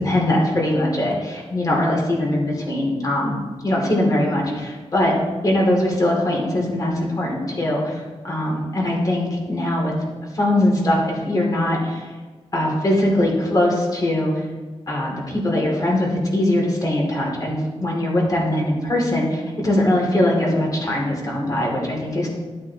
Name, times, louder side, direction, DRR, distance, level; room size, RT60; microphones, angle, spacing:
voice 1, 0.0-3.4 3.6-5.1 5.4-9.9 10.3-12.1 12.5-14.5 14.9-22.3, left 1 dB, 35° left, -2 dB, 2.5 m, -21 dB
12.5 x 8.2 x 2.8 m, 1.3 s
wide cardioid pair, 135°, 11 cm